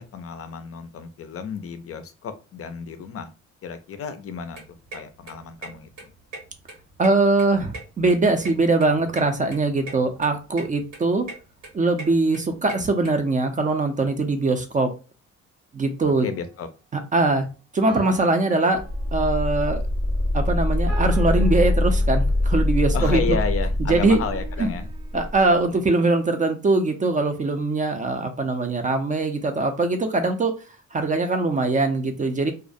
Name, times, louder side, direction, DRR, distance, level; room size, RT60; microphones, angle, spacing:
voice 1, 0.0-3.3 3.6-6.1 16.2-16.7 22.9-24.9, left 6 dB, 50° left, 10 dB, 0.4 m, -32 dB
sound 1, 4.3-13.1, right 3 dB, 85° right, 1.1 m, -40 dB
voice 2, 7.0-11.3 11.7-14.9 15.7-16.3 16.9-17.5 17.7-18.8 19.1-19.8 20.3-23.4 23.9-24.2 24.6-24.7 25.1-30.5 30.9-32.5, right 3 dB, 25° right, 7 dB, 0.4 m, -22 dB
sound 2, 16.2-16.4 17.9-19.6 20.9-22.6 23.9-25.4, right 4 dB, 65° right, 0.8 m, -42 dB
sound 3, 18.7-25.4, left 1 dB, 10° left, 0.7 m, -23 dB
2.3 x 2.1 x 2.5 m, 0.33 s
cardioid pair, 90°, 30 cm